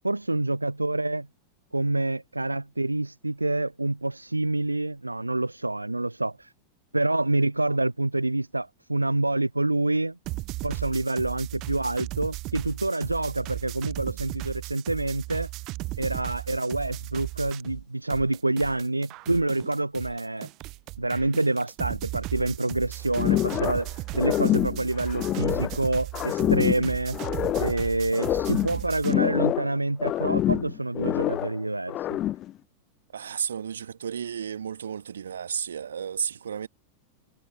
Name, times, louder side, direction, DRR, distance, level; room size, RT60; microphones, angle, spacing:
voice 1, 0.0-1.3 1.7-6.5 6.9-10.2 10.6-15.5 16.0-20.5 21.0-23.9 24.1-27.2 27.6-32.1, right 2 dB, 85° right, 0.5 m, -27 dB
sound 1, 10.3-17.8 18.1-29.1, right 21 dB, 40° right, 1.2 m, -36 dB
sound 2, 23.2-23.9 24.1-25.8 26.1-27.8 28.1-29.7 30.0-31.6 31.9-32.5, left 13 dB, 30° left, 0.3 m, -26 dB
voice 2, 33.1-36.7, right 8 dB, 65° right, 2.2 m, -33 dB
figure-of-eight pair, 90°, 0 cm